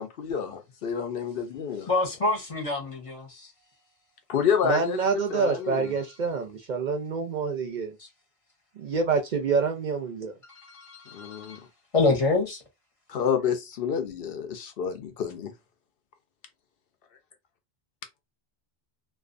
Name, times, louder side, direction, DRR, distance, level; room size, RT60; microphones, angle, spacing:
voice 1, 0.0-1.9 4.3-5.9 11.1-11.6 13.1-15.5, left 7 dB, 70° left, 0.8 m, -29 dB
voice 2, 1.9-3.5 10.6-11.6 11.9-12.6, left 3 dB, 35° left, 0.7 m, -26 dB
voice 3, 4.6-7.9 8.8-10.3, right 5 dB, 55° right, 0.6 m, -27 dB
2.4 x 2.3 x 2.4 m
omnidirectional pair, 1.0 m